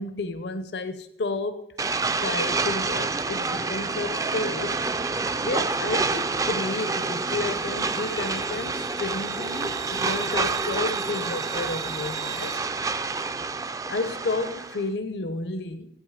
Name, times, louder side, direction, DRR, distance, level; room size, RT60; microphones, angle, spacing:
voice 1, 0.0-1.8 2.2-4.8 5.4-12.6 13.9-15.9, left 3 dB, 70° left, 0.8 m, -31 dB
sound 1, 1.8-14.8, right 3 dB, 20° right, 0.4 m, -28 dB
sound 2, 5.5-12.6, right 13 dB, 80° right, 2.2 m, -42 dB
15.5 x 9.1 x 4.9 m
head